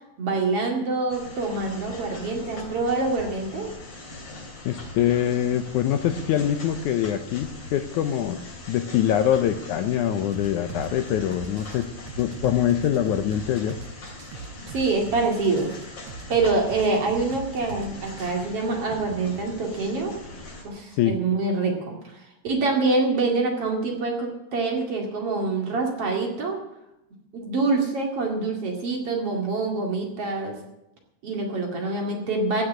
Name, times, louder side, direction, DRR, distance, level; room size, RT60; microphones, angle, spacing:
voice 1, 0.2-3.7 14.7-15.7 16.3-20.2 20.6-26.6 27.3-30.6 31.2-32.6, right 3 dB, 45° right, 1 dB, 2.9 m, -25 dB
sound 1, 1.1-20.6, left 2 dB, 45° left, 4.1 m, -41 dB
voice 2, 4.7-8.4 8.7-11.9 12.2-13.8 20.9-21.1, left 10 dB, 75° left, 9 dB, 1.9 m, -24 dB
sound 2, 10.3-18.3, right 6 dB, 75° right, 1.4 m, -40 dB
16.0 x 6.6 x 9.4 m, 0.87 s
omnidirectional pair, 4.0 m